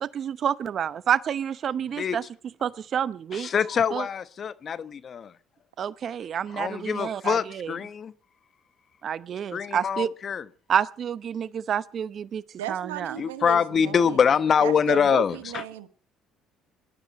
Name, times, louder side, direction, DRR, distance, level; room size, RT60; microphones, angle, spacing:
voice 1, 0.0-2.2 2.6-3.5 3.9-4.0 5.8-7.7 9.0-10.1 10.7-12.4 12.7-13.1, right 8 dB, 50° right, 0.8 m, -28 dB
voice 2, 3.3-5.3 6.5-8.1 9.5-10.5 13.2-15.3, left 7 dB, 45° left, 1.1 m, -24 dB
voice 3, 12.6-14.3 14.6-15.9, right 13 dB, 85° right, 1.2 m, -35 dB
21.0 x 12.0 x 4.2 m
hypercardioid pair, 60°, 0 cm